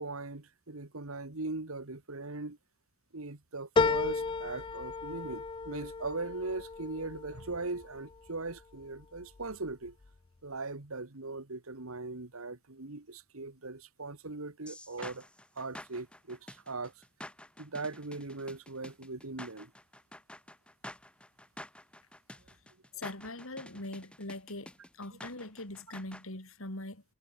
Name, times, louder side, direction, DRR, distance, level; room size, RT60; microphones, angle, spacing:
voice 1, 0.0-2.6 3.1-10.0 10.4-15.3 15.6-16.9 17.6-19.7, right 3 dB, 70° right, 1.8 m, -40 dB
sound 1, 3.8-8.5 9.0-9.7 10.1-10.2, left 4 dB, 20° left, 0.3 m, -33 dB
sound 2, 14.7-26.2, left 1 dB, 5° left, 6.2 m, -49 dB
voice 2, 23.0-27.0, left 2 dB, 65° left, 4.4 m, -42 dB
head